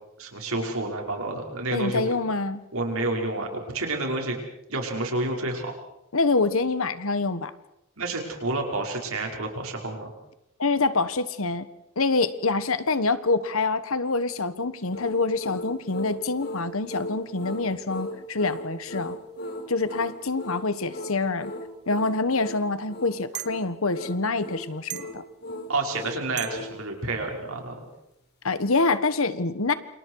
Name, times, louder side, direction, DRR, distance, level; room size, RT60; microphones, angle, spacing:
voice 1, 0.2-2.1 2.7-4.4 4.7-5.7 8.0-10.1 25.7-27.7, right 2 dB, 70° right, 2 dB, 5.5 m, -29 dB
voice 2, 1.7-2.6 6.1-7.5 10.6-11.7 12.0-19.2 19.7-21.5 21.9-25.2 28.4-29.7, left 3 dB, 65° left, 13 dB, 1.4 m, -26 dB
sound 1, 14.9-26.8, left 1 dB, 50° left, 3.9 m, -37 dB
sound 2, 22.1-22.2 23.3-23.6 24.9-25.2 26.4-26.6, right 14 dB, 50° right, 0.9 m, -35 dB
29.0 x 27.0 x 4.8 m, 0.84 s
head